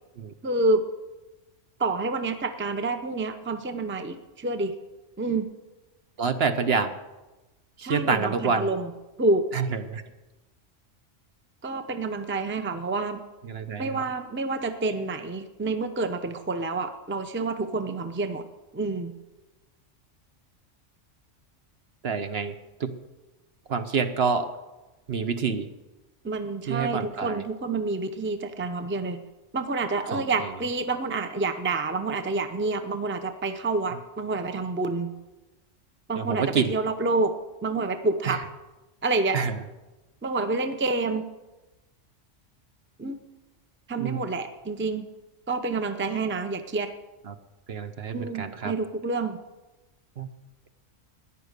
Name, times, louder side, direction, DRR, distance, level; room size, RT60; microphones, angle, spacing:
voice 1, 0.4-0.8 1.8-4.7 5.2-5.5 7.8-8.9 9.2-9.5 11.6-13.2 13.8-18.4 18.7-19.1 26.2-29.2 29.5-35.1 36.1-37.3 37.6-38.5 39.0-39.4 40.2-41.3 43.0-43.2 43.9-45.1 45.5-46.9 48.1-49.4, right 3 dB, 10° right, 8 dB, 0.6 m, -28 dB
voice 2, 6.2-6.9 7.8-8.7 9.5-10.0 13.4-13.9 22.0-22.5 22.8-23.0 23.7-24.5 25.1-25.7 26.7-27.4 30.1-30.5 36.1-36.7 38.3-38.4 39.3-39.6 44.0-44.2 47.3-47.4 47.7-48.7 50.2-50.3, right 5 dB, 55° right, 9 dB, 1.0 m, -27 dB
14.0 x 10.0 x 6.6 m, 1.1 s
omnidirectional pair, 1.3 m